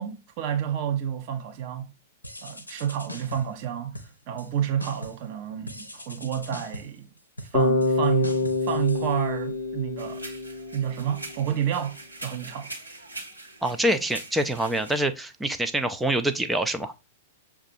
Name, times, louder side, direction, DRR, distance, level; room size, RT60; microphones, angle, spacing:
voice 1, 0.0-1.9 2.4-7.1 7.5-10.4 10.7-12.7, right 9 dB, 40° right, 0.7 m, -30 dB
sound 1, 2.2-3.6 3.9-4.5 4.8-5.3 5.7-9.7, left 1 dB, 85° left, 0.6 m, -42 dB
Bass guitar, 7.5-11.5, left 3 dB, 50° left, 0.8 m, -27 dB
sound 2, 10.0-15.1, right 2 dB, 85° right, 1.1 m, -42 dB
voice 2, 13.6-17.0, right 1 dB, 5° right, 0.4 m, -25 dB
6.5 x 2.4 x 2.6 m
figure-of-eight pair, 100°, 0 cm